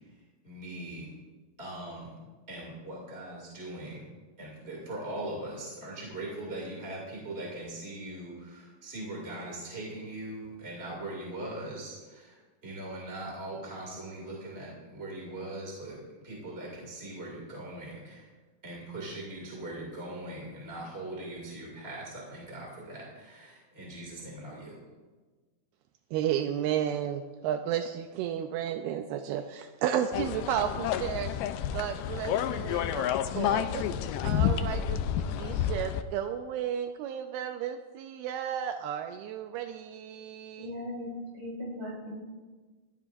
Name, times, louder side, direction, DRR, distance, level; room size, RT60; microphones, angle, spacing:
voice 1, 0.4-1.2 1.6-2.2 2.5-4.1 4.4-16.0 16.2-18.3 18.6-24.8, right 1 dB, 20° right, -3 dB, 2.2 m, -40 dB
voice 2, 26.1-31.3 31.7-33.9 34.2-40.7, right 9 dB, 80° right, 6 dB, 2.5 m, -33 dB
sound 1, 30.1-36.0, left 9 dB, 90° left, 1.9 m, -30 dB
voice 3, 40.6-42.1, left 1 dB, 60° right, -3 dB, 6.8 m, -38 dB
22.0 x 15.0 x 2.6 m, 1.3 s
omnidirectional pair, 4.5 m